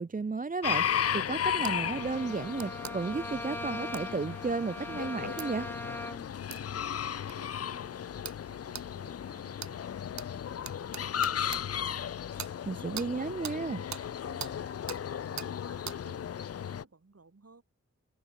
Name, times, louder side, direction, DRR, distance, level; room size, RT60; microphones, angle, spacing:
voice 1, 0.0-5.7 12.7-13.8, right 4 dB, 30° right, 0.5 m, -33 dB
sound 1, 0.6-16.8, left 9 dB, 55° left, 0.4 m, -35 dB
Bowed string instrument, 1.4-6.4, left 1 dB, 5° left, 1.4 m, -41 dB
sound 2, 1.6-1.8 2.6-3.0 3.9-4.1 5.4-5.5 6.5-6.6 7.3-7.4 8.2-8.4 8.7-8.9 9.6-9.7 10.2-10.3 10.6-11.6 12.4-12.5 13.0-13.1 13.4-13.6 13.9-14.0 14.4-14.5 14.9-15.0 15.4-15.5 15.9-16.0, right 7 dB, 70° right, 0.8 m, -40 dB
voice 2, 6.6-9.9 10.1-12.1 12.6-17.6, right 3 dB, 55° right, 6.4 m, -58 dB
wide cardioid pair, 60°, 29 cm